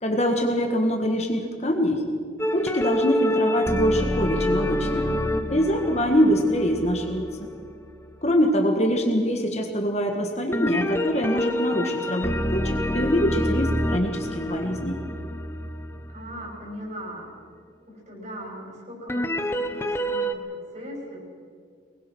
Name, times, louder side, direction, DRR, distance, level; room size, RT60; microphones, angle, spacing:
voice 1, 0.0-2.1 2.5-5.0 5.5-7.5 8.2-15.0, equal, 35° left, 3 dB, 1.7 m, -24 dB
sound 1, 2.4-8.1 10.5-16.4 19.1-20.3, equal, 10° left, 0.8 m, -27 dB
voice 2, 5.0-5.8 16.1-17.3 17.8-21.2, equal, 40° right, -1 dB, 6.3 m, -39 dB
24.0 x 20.0 x 6.2 m, 2.1 s
head